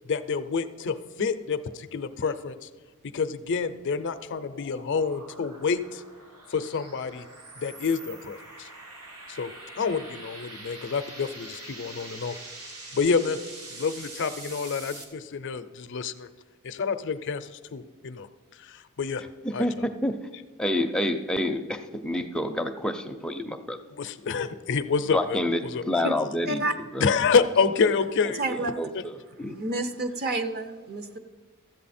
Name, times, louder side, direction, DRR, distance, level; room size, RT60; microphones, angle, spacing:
voice 1, 0.1-2.7 3.1-6.0 6.5-7.3 7.6-8.7 9.3-12.4 12.9-13.4 13.7-16.3 16.6-18.3 18.5-19.2 19.5-19.7 24.0-25.4 25.6-25.8 27.0-28.6, left 5 dB, 55° left, 11 dB, 0.5 m, -28 dB
sound 1, 3.0-15.0, right 2 dB, 75° right, 1.6 m, -44 dB
voice 2, 19.4-20.3 20.6-23.8 25.1-25.6 25.9-26.6 26.9-27.0 28.2-29.1 29.4-29.6, left 1 dB, 5° left, 6 dB, 0.5 m, -28 dB
voice 3, 28.4-28.8 29.6-31.2, right 2 dB, 45° right, 9 dB, 0.7 m, -29 dB
13.5 x 8.1 x 4.2 m, 1.4 s
head